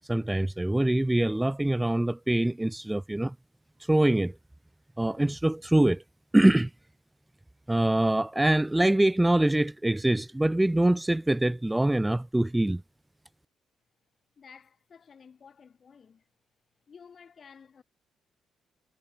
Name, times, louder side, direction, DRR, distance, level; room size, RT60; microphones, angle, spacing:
voice 1, 0.0-3.3 3.9-4.3 5.0-6.0 6.3-6.7 7.7-12.8, right 1 dB, 10° right, 0.5 m, -24 dB
voice 2, 14.4-16.2 16.9-17.8, left 6 dB, 45° left, 6.7 m, -53 dB
cardioid pair, 90°, 0 cm